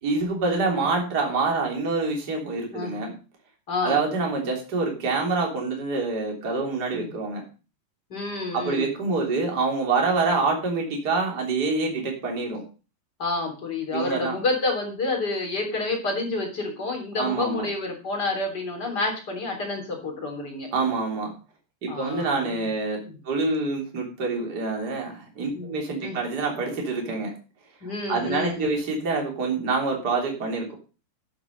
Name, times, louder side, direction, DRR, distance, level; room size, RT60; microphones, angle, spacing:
voice 1, 0.0-3.1 3.8-7.4 8.5-12.6 13.9-14.4 17.2-17.7 20.7-21.3 21.8-23.0 23.2-27.3 28.1-30.7, right 3 dB, 25° right, 1 dB, 3.3 m, -26 dB
voice 2, 3.7-4.0 6.9-7.1 8.1-8.9 13.2-20.7 21.9-22.7 23.0-23.2 25.5-25.7 26.0-26.2 27.8-28.7, left 3 dB, 25° left, 1 dB, 3.6 m, -29 dB
11.5 x 8.9 x 5.3 m, 0.34 s
omnidirectional pair, 4.9 m